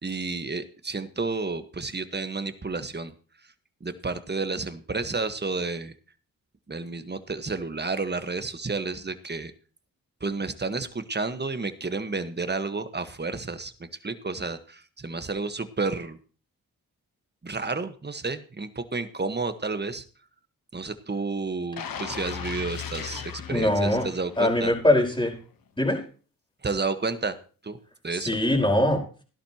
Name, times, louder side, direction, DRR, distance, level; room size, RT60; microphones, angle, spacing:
voice 1, 0.0-3.1 3.8-5.9 6.7-9.5 10.2-13.7 14.0-16.2 17.4-20.0 20.7-24.7 26.6-27.4 27.6-27.8 28.0-28.3, right 3 dB, 30° right, 10 dB, 1.5 m, -31 dB
sound 1, 21.8-24.7 25.1-25.3, left 8 dB, 70° left, 1.3 m, -37 dB
voice 2, 23.5-24.1 24.4-25.3 25.8-26.0 28.1-29.0, left 1 dB, 15° left, 2 dB, 4.8 m, -22 dB
16.5 x 11.5 x 3.0 m, 0.38 s
cardioid pair, 50°, 35 cm